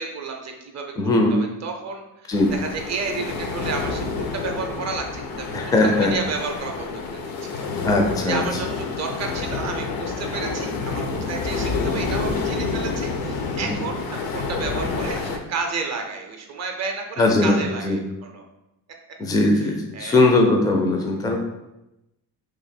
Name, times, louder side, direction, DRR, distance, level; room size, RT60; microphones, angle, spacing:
voice 1, 0.0-7.7 8.2-18.4 19.6-20.4, right 4 dB, 45° right, 3 dB, 0.5 m, -32 dB
voice 2, 1.0-1.3 2.3-2.5 5.5-6.1 7.8-8.4 17.2-18.0 19.2-21.4, left 2 dB, 10° left, 2 dB, 0.3 m, -19 dB
sound 1, 2.3-15.4, left 4 dB, 65° left, 0.6 m, -28 dB
3.0 x 2.5 x 4.2 m, 0.92 s
cardioid pair, 145°, 39 cm